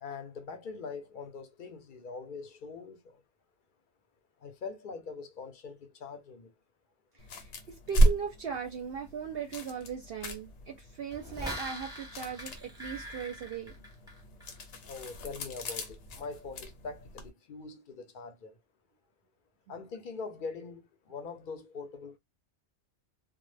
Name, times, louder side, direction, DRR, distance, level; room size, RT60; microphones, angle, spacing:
voice 1, 0.0-3.2 4.4-6.5 14.8-18.5 19.7-22.2, left 4 dB, 55° left, 0.6 m, -43 dB
sound 1, 7.2-17.3, right 1 dB, 80° left, 0.9 m, -33 dB
voice 2, 7.3-13.7, right 7 dB, 65° right, 0.7 m, -38 dB
sound 2, 11.1-14.6 15.0-15.1, equal, 5° right, 0.8 m, -42 dB
2.1 x 2.0 x 3.1 m
omnidirectional pair, 1.2 m